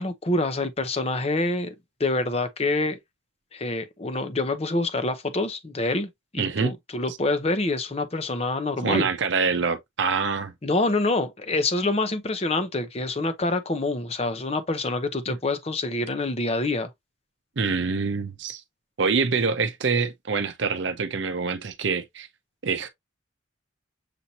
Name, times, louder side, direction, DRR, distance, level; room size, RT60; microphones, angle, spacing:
voice 1, 0.0-1.7 2.0-3.0 3.5-9.1 10.6-16.9, left 2 dB, 30° left, 0.7 m, -26 dB
voice 2, 6.4-6.7 7.1-7.2 8.8-10.5 15.3-15.4 17.6-18.6 19.0-22.3 22.6-22.9, right 4 dB, 65° right, 0.6 m, -25 dB
6.8 x 2.7 x 2.8 m
head